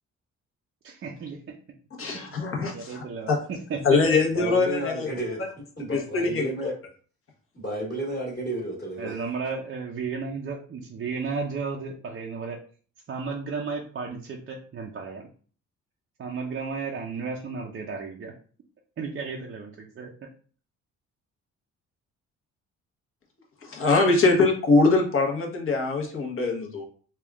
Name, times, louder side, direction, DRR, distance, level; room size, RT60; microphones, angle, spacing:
voice 1, 0.8-1.5 2.1-4.0 4.4-4.5 9.0-12.6 13.1-15.3 16.2-18.3 19.0-20.1, right 5 dB, 40° right, 0 dB, 0.6 m, -34 dB
voice 2, 2.0-3.4 3.8-5.1 5.9-6.5 23.6-26.8, left 3 dB, 45° left, 0 dB, 1.1 m, -23 dB
voice 3, 4.0-6.7 7.5-9.2, right 1 dB, 30° left, -5 dB, 1.6 m, -32 dB
3.5 x 2.3 x 3.5 m, 0.42 s
cardioid pair, 90°, 30 cm